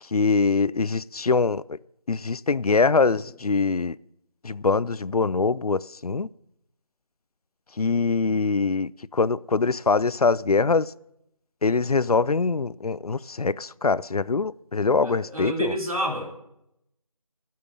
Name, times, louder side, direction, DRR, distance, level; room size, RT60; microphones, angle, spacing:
voice 1, 0.1-1.6 2.1-4.0 4.4-6.3 7.8-10.9 11.6-15.7, left 4 dB, 80° left, 0.5 m, -23 dB
voice 2, 15.0-16.4, right 1 dB, 70° right, 3.2 m, -29 dB
9.5 x 7.6 x 9.0 m
figure-of-eight pair, 170°, 19 cm